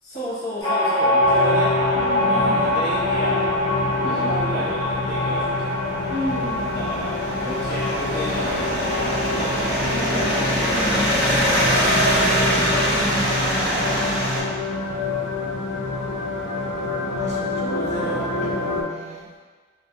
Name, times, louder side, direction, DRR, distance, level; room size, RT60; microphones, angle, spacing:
voice 1, 0.0-1.8 2.2-6.0 6.7-10.4 10.6-13.0 17.7-18.3, equal, 55° left, -10 dB, 0.9 m, -33 dB
sound 1, 0.6-13.7 14.0-14.1 14.4-15.2, left 1 dB, 20° left, 1.1 m, -25 dB
sound 2, 1.2-18.8, left 3 dB, 80° left, 0.4 m, -27 dB
voice 2, 1.9-2.8 3.9-4.3 6.0-6.8 9.8-11.4 12.9-14.0 17.1-19.3, equal, 40° right, -3 dB, 0.3 m, -34 dB
sound 3, 5.4-14.4, equal, 65° right, 0.7 m, -23 dB
2.3 x 2.1 x 2.7 m, 1.5 s
head